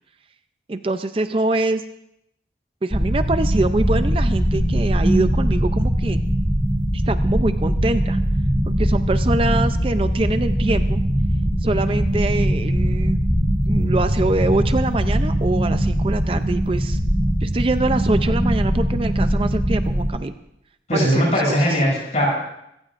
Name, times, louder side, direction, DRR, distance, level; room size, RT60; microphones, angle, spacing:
voice 1, 0.7-1.8 2.8-6.2 6.9-8.2 8.7-11.0 11.6-13.2 13.7-17.0 17.4-20.3 20.9-21.8, right 2 dB, 30° right, 10 dB, 0.4 m, -24 dB
sound 1, 2.9-20.1, equal, 10° right, 2.8 m, -21 dB
sound 2, 9.5-12.1, equal, 20° left, 7.0 m, -35 dB
voice 2, 20.9-22.3, equal, 40° left, -3 dB, 6.9 m, -19 dB
25.5 x 15.0 x 2.5 m, 0.79 s
head